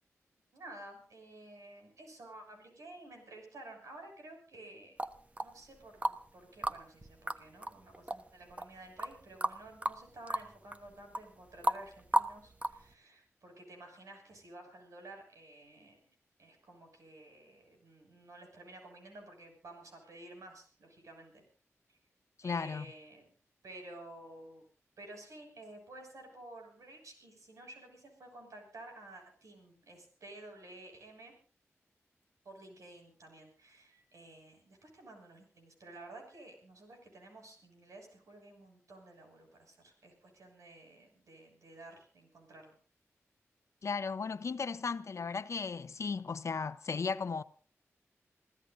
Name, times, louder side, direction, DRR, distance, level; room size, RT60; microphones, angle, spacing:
voice 1, 0.5-5.0 5.4-21.4 22.4-23.3 23.6-24.6 25.0-31.3 32.4-42.8, right 2 dB, 85° right, 6.7 m, -52 dB
sound 1, 5.0-6.3 6.6-12.9, right 1 dB, 25° right, 1.2 m, -34 dB
voice 2, 22.4-22.9 43.8-47.4, left 5 dB, 65° left, 0.8 m, -35 dB
28.5 x 15.5 x 2.7 m
cardioid pair, 60°, 5 cm